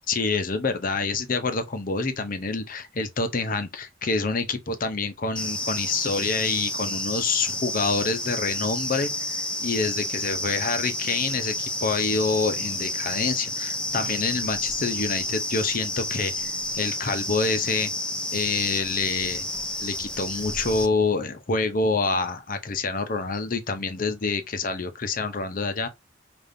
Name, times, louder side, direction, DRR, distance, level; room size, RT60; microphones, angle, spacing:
voice 1, 0.1-17.9 18.3-19.5 19.8-25.9, left 4 dB, 45° left, 0.7 m, -27 dB
sound 1, 5.4-20.9, left 1 dB, 5° left, 0.3 m, -30 dB
5.1 x 2.6 x 2.6 m
head